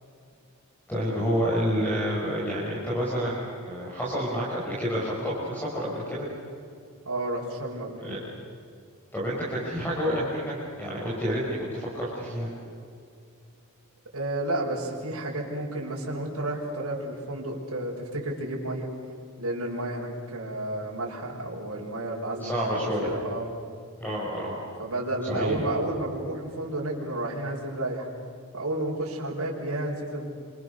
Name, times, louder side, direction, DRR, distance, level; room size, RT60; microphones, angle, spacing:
voice 1, 0.9-6.3 8.0-8.2 9.1-12.5 22.4-23.1 24.0-24.6 25.2-25.5, equal, 10° left, -6 dB, 6.1 m, -29 dB
voice 2, 7.1-8.2 14.1-18.9 19.4-23.5 24.8-28.1 28.5-30.3, right 1 dB, 80° right, -3 dB, 5.6 m, -31 dB
29.5 x 27.5 x 6.8 m, 2.4 s
head